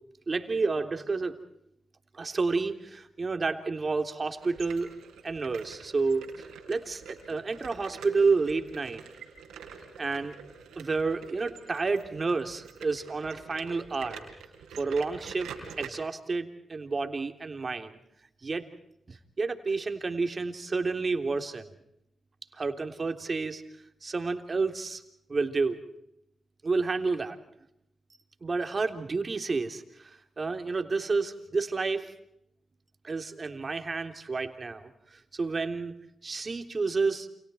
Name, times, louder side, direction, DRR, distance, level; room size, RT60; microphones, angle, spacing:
voice 1, 0.3-1.4 2.1-4.9 5.2-9.0 10.0-10.3 10.7-14.2 14.8-15.5 15.8-18.0 18.4-18.7 19.1-21.7 22.5-23.6 24.0-25.0 25.3-25.8 26.6-27.4 28.4-30.1 30.4-32.1 33.0-34.9 35.3-35.9 36.2-37.3, right 4 dB, 45° right, 6 dB, 3.4 m, -30 dB
sound 1, 4.3-15.9, right 7 dB, 90° right, 4.1 m, -47 dB
30.0 x 28.5 x 4.5 m, 0.79 s
supercardioid pair, 45°, 0 cm